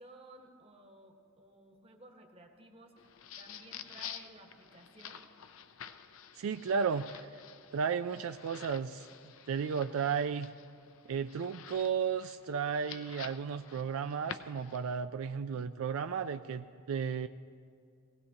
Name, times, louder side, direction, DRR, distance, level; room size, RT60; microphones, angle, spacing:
voice 1, 0.0-3.0 3.4-5.3, right 2 dB, 30° right, 2 dB, 1.2 m, -56 dB
sound 1, 3.0-15.0, left 8 dB, 65° left, 0.5 m, -50 dB
voice 2, 6.4-7.4 7.7-9.1 9.5-10.5 11.1-17.3, right 6 dB, 75° right, 9 dB, 0.3 m, -34 dB
19.0 x 17.0 x 2.8 m, 2.3 s
head